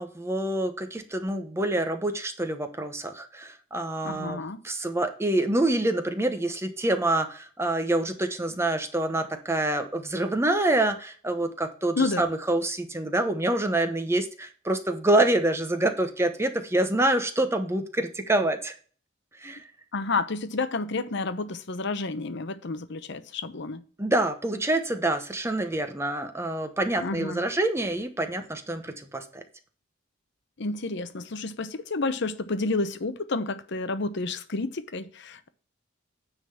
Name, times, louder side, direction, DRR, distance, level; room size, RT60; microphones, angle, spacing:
voice 1, 0.0-4.4 4.6-18.8 19.4-19.6 24.0-29.4, right 1 dB, 15° right, 0.9 m, -26 dB
voice 2, 4.0-4.6 12.0-12.2 19.9-23.8 27.0-27.4 30.6-35.5, left 3 dB, 60° left, 0.8 m, -30 dB
9.5 x 3.9 x 6.9 m
head